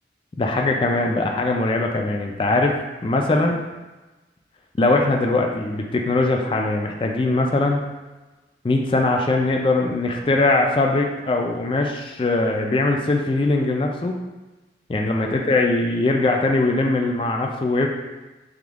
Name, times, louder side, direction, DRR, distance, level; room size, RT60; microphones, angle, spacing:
voice 1, 0.4-3.6 4.8-7.8 8.6-14.2 14.9-17.9, left 2 dB, 30° left, 2 dB, 0.3 m, -21 dB
5.0 x 2.4 x 3.5 m, 1.2 s
head